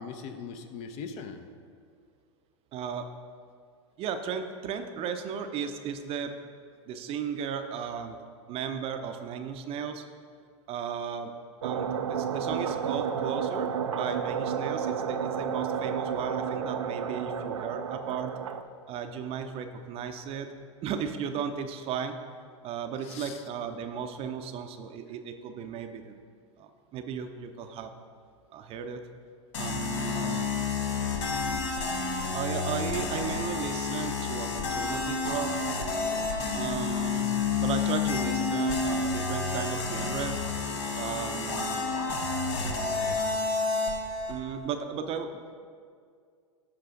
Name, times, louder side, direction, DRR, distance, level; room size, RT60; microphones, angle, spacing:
voice 1, 0.0-1.5 23.0-23.4 30.1-30.3, left 5 dB, 45° left, 8 dB, 0.7 m, -40 dB
voice 2, 2.7-3.1 4.0-6.3 6.9-8.2 8.5-10.0 10.7-11.3 11.6-18.3 18.9-20.5 20.8-22.2 22.6-26.2 26.6-27.9 28.5-29.0 29.6-30.5 32.3-35.6 36.5-37.3 37.6-40.4 40.9-41.9 44.3-45.6, right 7 dB, 40° right, 7 dB, 0.6 m, -35 dB
sound 1, 11.6-18.6, right 7 dB, 80° right, 0.5 m, -31 dB
sound 2, 29.5-44.4, left 4 dB, 70° left, 1.2 m, -30 dB
11.5 x 4.7 x 3.8 m, 2.1 s
hypercardioid pair, 95°, 16 cm